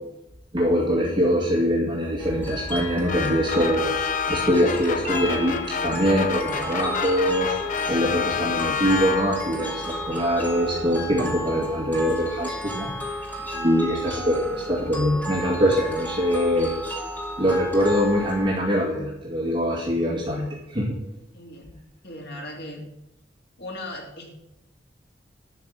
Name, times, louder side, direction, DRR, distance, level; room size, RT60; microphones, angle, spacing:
voice 1, 0.5-13.1 13.5-16.7 17.4-20.9, equal, 25° right, -4 dB, 2.2 m, -23 dB
sound 1, 2.2-18.6, equal, 10° left, 2.3 m, -33 dB
sound 2, 3.1-9.6, left 6 dB, 45° left, 0.5 m, -29 dB
voice 2, 21.3-21.7 22.0-22.8 23.6-24.3, left 1 dB, 60° left, 0 dB, 3.0 m, -37 dB
11.5 x 5.9 x 8.3 m, 0.88 s
head